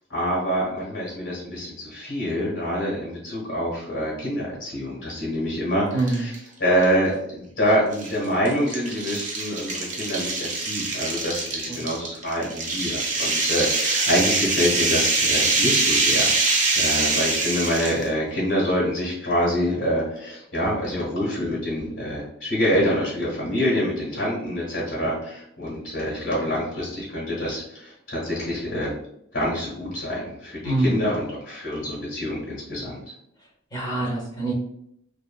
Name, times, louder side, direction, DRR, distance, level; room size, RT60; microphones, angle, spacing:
voice 1, 0.1-6.3 6.6-16.3 16.7-28.9 29.3-33.0, equal, 90° left, -8 dB, 1.3 m, -26 dB
voice 2, 5.9-6.2 11.7-11.8 30.6-31.1 33.7-34.5, right 2 dB, 20° left, -2 dB, 0.8 m, -25 dB
sound 1, 6.0-6.4 6.8-6.9 7.9-18.1, right 3 dB, 40° right, 0.5 m, -24 dB
2.7 x 2.5 x 2.3 m, 0.73 s
head